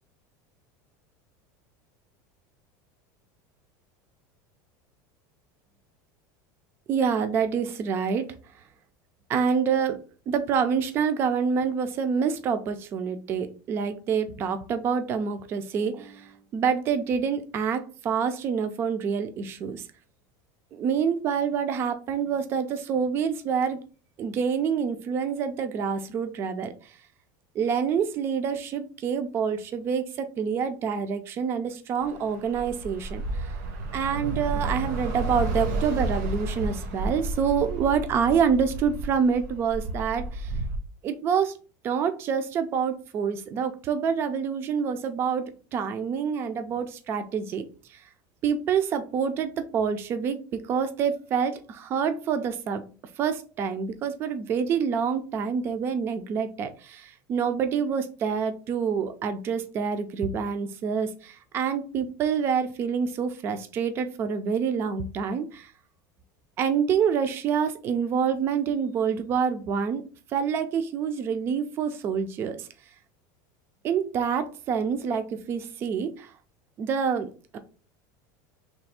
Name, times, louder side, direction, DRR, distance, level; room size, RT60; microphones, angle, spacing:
voice 1, 6.9-8.3 9.3-10.0 10.3-19.9 20.7-23.8 24.2-26.9 27.6-33.2 33.9-40.5 41.0-41.5 41.8-47.7 47.9-48.0 48.4-52.8 53.2-65.7 66.6-70.0 70.3-72.7 73.8-76.3 76.8-77.6, right 6 dB, 25° right, 9 dB, 0.3 m, -27 dB
Bus / Traffic noise roadway noise, 32.0-40.8, right 2 dB, 65° right, 0.8 m, -32 dB
3.3 x 2.3 x 4.1 m, 0.36 s
cardioid pair, 175°, 10 cm